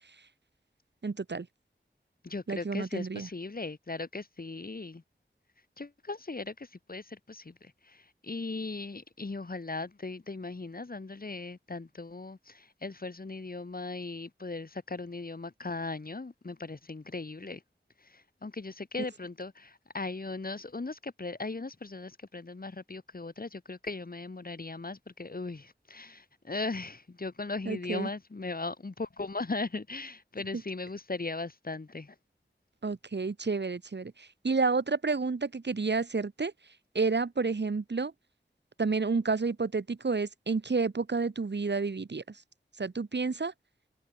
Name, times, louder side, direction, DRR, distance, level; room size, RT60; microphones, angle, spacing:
voice 1, 1.0-1.5 2.5-3.3 27.7-28.1 32.8-36.5 36.9-38.1 38.8-42.4 42.8-43.5, right 4 dB, 60° right, 1.2 m, -30 dB
voice 2, 2.2-5.0 5.8-17.6 18.0-32.1, left 3 dB, 45° left, 1.4 m, -38 dB
wide cardioid pair, 40°, 20 cm